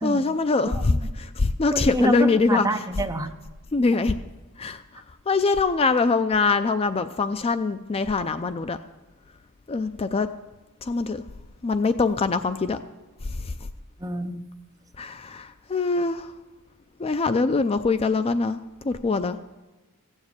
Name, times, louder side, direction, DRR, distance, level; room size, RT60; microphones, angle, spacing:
voice 1, 0.0-2.9 3.7-4.2 4.6-8.8 9.7-10.3 10.8-11.2 11.6-12.8 13.2-13.7 15.0-16.3 17.0-19.4, left 3 dB, 25° left, 11 dB, 0.4 m, -24 dB
voice 2, 1.7-3.3 14.0-14.4, right 1 dB, 15° right, 6 dB, 0.7 m, -27 dB
15.5 x 7.3 x 8.1 m, 1.1 s
head